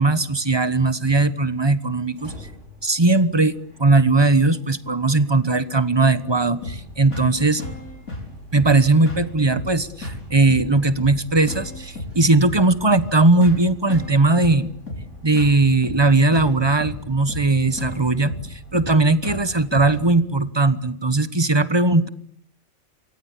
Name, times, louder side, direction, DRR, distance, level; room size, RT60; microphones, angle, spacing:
voice 1, 0.0-2.3 2.8-7.6 8.5-14.7 15.2-22.1, right 2 dB, 20° right, 14 dB, 1.1 m, -19 dB
sound 1, 2.0-20.1, equal, 60° right, 5.9 m, -48 dB
sound 2, 6.6-20.0, left 1 dB, 85° left, 6.1 m, -35 dB
27.0 x 23.5 x 8.5 m, 0.67 s
omnidirectional pair, 1.4 m